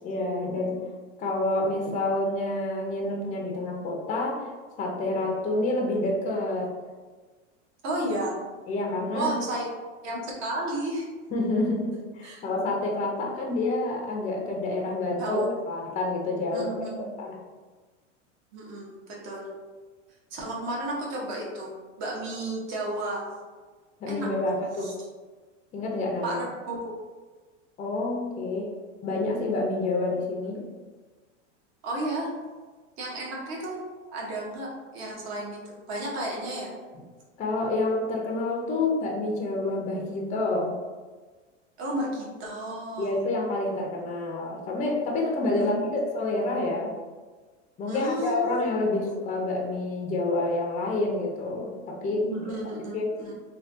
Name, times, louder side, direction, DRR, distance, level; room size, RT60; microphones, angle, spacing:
voice 1, 0.0-0.8 1.2-4.5 4.8-6.7 8.7-9.3 11.3-16.9 17.2-17.4 24.0-24.9 25.7-26.4 27.8-28.7 29.0-30.7 37.4-40.7 43.0-46.9 47.8-52.4 52.9-53.1, left 2 dB, 20° left, -1 dB, 0.5 m, -28 dB
voice 2, 7.8-8.4 9.1-9.7 10.0-11.0 12.2-12.4 15.2-15.5 16.5-17.1 18.5-19.5 20.3-23.3 24.1-24.5 24.8-24.9 26.2-26.9 31.8-32.3 33.0-33.8 34.1-36.7 41.8-43.2 45.5-45.7 47.9-48.6 52.2-53.4, right 1 dB, 45° right, -3 dB, 1.1 m, -33 dB
3.3 x 2.3 x 2.6 m, 1.4 s
supercardioid pair, 115°, 37 cm